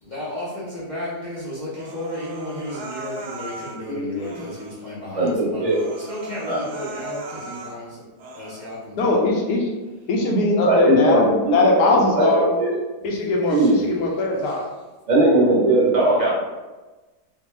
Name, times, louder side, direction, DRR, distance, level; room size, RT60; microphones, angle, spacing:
voice 1, 0.0-8.0 8.3-9.4 13.5-14.6, left 1 dB, 55° left, -9 dB, 0.5 m, -34 dB
Human voice, 1.7-3.8 4.2-4.8 5.3-5.4 5.7-7.8 8.2-8.8, right 2 dB, 85° right, 0.6 m, -38 dB
voice 2, 3.9-4.4 9.0-9.7 10.1-11.2 11.5-12.5 13.0-14.6, left 2 dB, 80° left, -2 dB, 1.2 m, -20 dB
voice 3, 5.1-5.8 6.5-6.6 10.6-11.6 11.9-12.7 13.5-13.8 15.1-16.3, right 1 dB, 30° right, -5 dB, 0.7 m, -19 dB
3.2 x 2.1 x 3.1 m, 1.2 s
omnidirectional pair, 1.7 m